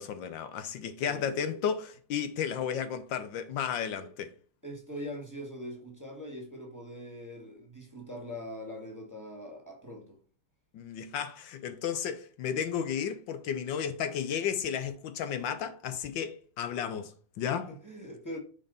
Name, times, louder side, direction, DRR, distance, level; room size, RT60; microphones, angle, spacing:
voice 1, 0.0-4.3 10.7-17.7, left 8 dB, 75° left, 1.3 m, -33 dB
voice 2, 1.0-1.6 4.0-4.1 4.6-10.2 17.5-18.4, equal, 10° right, 1.6 m, -42 dB
6.3 x 4.2 x 3.9 m
omnidirectional pair, 2.1 m